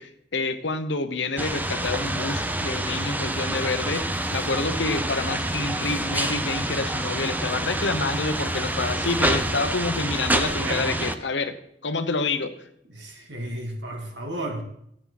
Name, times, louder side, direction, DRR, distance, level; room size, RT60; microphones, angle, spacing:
voice 1, 0.0-11.6 11.8-12.5, left 3 dB, 80° left, 9 dB, 1.1 m, -28 dB
sound 1, 1.4-11.1, right 1 dB, 10° right, 0.7 m, -27 dB
voice 2, 10.6-10.9 12.9-14.6, right 1 dB, 80° right, 2 dB, 2.6 m, -33 dB
15.0 x 8.9 x 4.2 m, 0.72 s
head